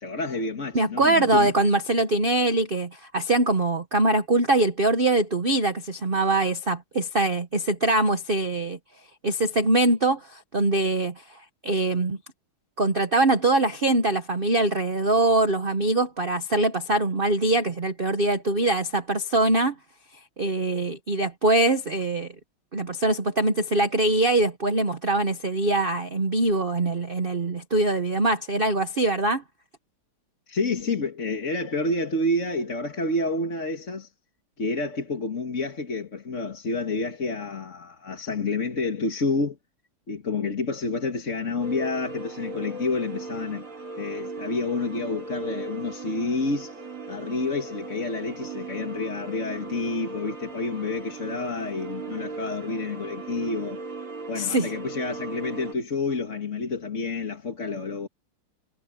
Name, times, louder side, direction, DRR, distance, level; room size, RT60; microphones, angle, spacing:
voice 1, 0.0-1.5 30.5-34.1 34.6-39.6 40.1-43.7 44.0-46.8 47.1-53.8 54.3-58.1, left 3 dB, 35° left, 2.1 m, -29 dB
voice 2, 0.7-8.8 9.2-11.1 11.6-12.2 12.8-19.7 20.4-22.3 22.7-29.4 54.3-54.7, right 2 dB, 40° right, 0.9 m, -23 dB
sound 1, 41.6-55.7, right 3 dB, 80° right, 4.6 m, -38 dB
omnidirectional pair, 2.3 m